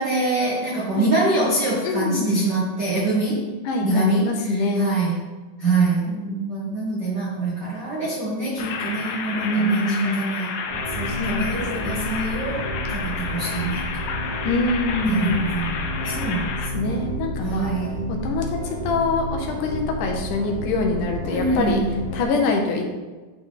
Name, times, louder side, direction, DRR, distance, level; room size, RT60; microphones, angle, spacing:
voice 1, 0.0-3.4 3.8-5.2 5.6-10.6 10.9-14.1 15.0-17.0 17.4-18.1 21.2-22.0, right 2 dB, 90° right, -6 dB, 0.9 m, -25 dB
voice 2, 1.8-2.5 3.7-4.9 9.4-10.2 11.1-12.3 14.4-15.5 16.1-16.4 16.7-17.7 18.2-21.8 22.1-22.9, left 2 dB, 70° left, 1 dB, 2.1 m, -24 dB
sound 1, 8.6-16.7, left 5 dB, 85° left, 2.6 m, -31 dB
sound 2, 10.7-22.2, equal, 20° right, 1.5 m, -31 dB
10.0 x 3.9 x 3.8 m, 1.3 s
omnidirectional pair, 4.3 m